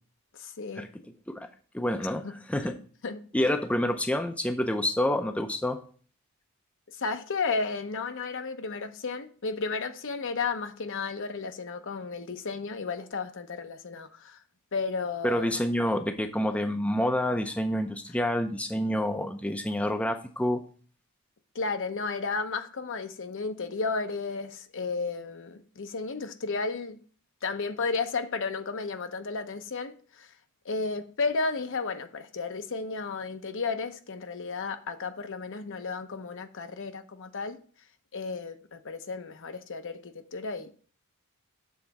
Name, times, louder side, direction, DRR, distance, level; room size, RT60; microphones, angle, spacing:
voice 1, 0.4-0.9 2.2-2.3 2.6-2.8 3.0-3.2 6.9-14.4 14.7-15.5 21.5-27.0 27.4-30.3 30.6-37.6 38.1-40.7, left 4 dB, 55° left, 0.7 m, -33 dB
voice 2, 1.7-2.2 2.5-2.7 3.3-5.8 15.2-20.6, left 1 dB, 5° left, 0.5 m, -28 dB
7.2 x 3.9 x 5.9 m
head